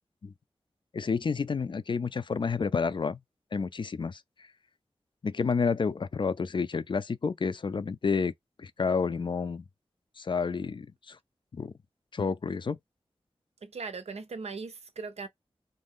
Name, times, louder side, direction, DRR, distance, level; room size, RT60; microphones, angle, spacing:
voice 1, 0.9-3.2 3.5-4.2 5.2-8.3 8.6-9.6 10.2-11.2 11.5-11.7 12.1-12.8, left 5 dB, 50° left, 0.3 m, -30 dB
voice 2, 13.6-15.3, right 4 dB, 85° right, 0.5 m, -39 dB
2.6 x 2.2 x 3.5 m
wide cardioid pair, 65°, 11 cm